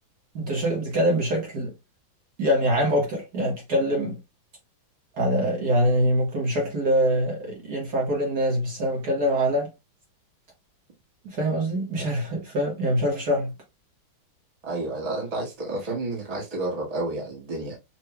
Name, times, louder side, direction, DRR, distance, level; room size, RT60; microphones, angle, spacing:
voice 1, 0.3-1.7 2.4-4.2 5.1-9.7 11.2-13.5, equal, 55° right, 1.9 m, -24 dB
voice 2, 14.6-17.8, right 2 dB, 20° right, 1.6 m, -30 dB
6.3 x 3.3 x 2.2 m
omnidirectional pair, 2.2 m